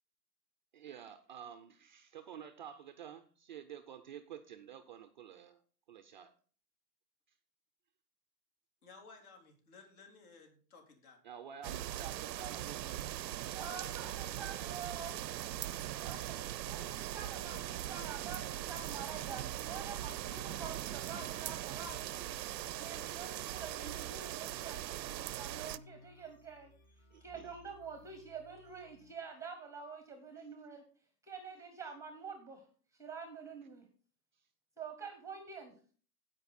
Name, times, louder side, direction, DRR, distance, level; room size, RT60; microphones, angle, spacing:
voice 1, 0.7-5.6 5.9-6.3 11.2-12.8 22.9-23.2 23.7-23.9 27.1-27.5, right 8 dB, 30° right, 8 dB, 0.4 m, -50 dB
voice 2, 8.8-11.2, left 4 dB, 60° left, 2 dB, 3.7 m, -57 dB
sound 1, 11.6-25.8, right 13 dB, 90° right, 0.6 m, -40 dB
voice 3, 13.5-15.2 16.0-22.3 22.8-26.7 27.2-30.8 31.2-32.6 33.0-33.9 34.8-35.8, right 5 dB, 5° right, 7 dB, 0.8 m, -47 dB
sound 2, 21.7-29.1, left 3 dB, 40° left, 4.3 m, -62 dB
15.5 x 5.2 x 4.1 m, 0.42 s
hypercardioid pair, 145°, 49 cm